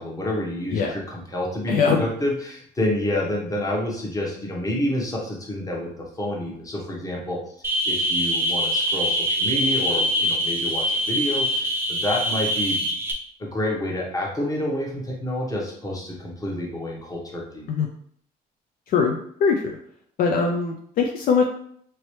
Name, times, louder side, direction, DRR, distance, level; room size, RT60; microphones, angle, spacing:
voice 1, 0.0-5.9 6.2-7.4 7.9-12.9 13.4-17.7, left 1 dB, 20° left, -2 dB, 1.0 m, -28 dB
voice 2, 1.7-2.0 17.7-17.9 18.9-19.8 20.2-21.4, left 5 dB, 60° left, 2 dB, 0.4 m, -21 dB
sound 1, 7.6-13.1, equal, 15° right, 0.6 m, -24 dB
3.0 x 3.0 x 3.1 m, 0.65 s
cardioid pair, 110°, 17 cm